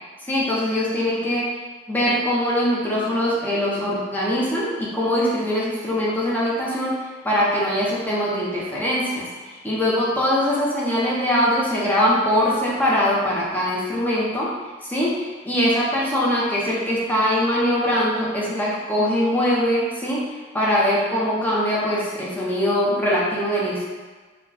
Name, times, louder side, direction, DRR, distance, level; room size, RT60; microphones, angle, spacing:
voice 1, 0.3-1.4 1.9-7.0 7.2-14.5 14.8-20.2 20.5-23.8, equal, 10° left, -7 dB, 0.9 m, -22 dB
4.5 x 2.3 x 4.1 m, 1.4 s
head